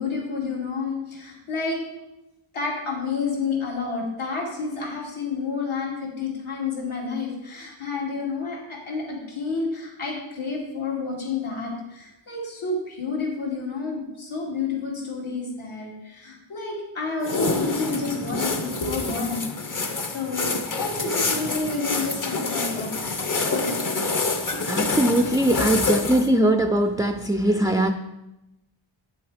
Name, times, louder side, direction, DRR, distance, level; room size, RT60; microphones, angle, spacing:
voice 1, 0.0-1.8 2.5-19.8 20.1-20.5 20.8-23.2 23.5-24.0, left 4 dB, 80° left, -3 dB, 2.9 m, -30 dB
sound 1, 17.2-26.3, left 3 dB, 40° left, 0.9 m, -27 dB
voice 2, 24.7-27.9, right 1 dB, 10° right, 6 dB, 0.3 m, -21 dB
9.6 x 6.9 x 5.1 m, 0.96 s
wide cardioid pair, 140°, 49 cm